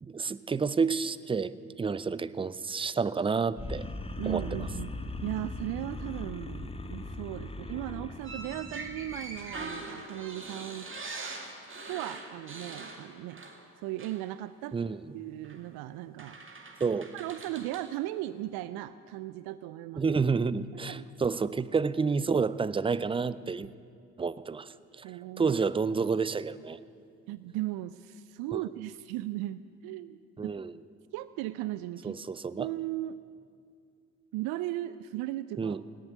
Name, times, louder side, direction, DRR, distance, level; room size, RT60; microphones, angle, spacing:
voice 1, 0.0-3.9 4.3-4.4 14.7-15.0 16.8-17.1 20.0-23.7 24.2-25.1 25.4-26.8 28.5-28.6 30.4-30.7 32.0-32.7 35.6-35.8, right 5 dB, 15° right, 18 dB, 0.4 m, -29 dB
sound 1, 3.6-9.8, left 2 dB, 15° left, 1.0 m, -39 dB
voice 2, 4.2-4.9 5.2-10.9 11.9-13.4 13.8-14.8 15.1-16.4 17.1-20.0 20.9-21.1 25.0-25.6 26.0-26.1 27.3-30.2 30.4-30.5 31.1-32.2 32.6-33.2 34.3-35.8, right 15 dB, 65° right, 15 dB, 0.5 m, -37 dB
sound 2, 8.2-13.7 14.0-14.2 15.4-15.6 16.2-17.9, right 3 dB, 30° right, 2.3 m, -42 dB
17.5 x 7.6 x 9.3 m, 2.3 s
hypercardioid pair, 50°, 41 cm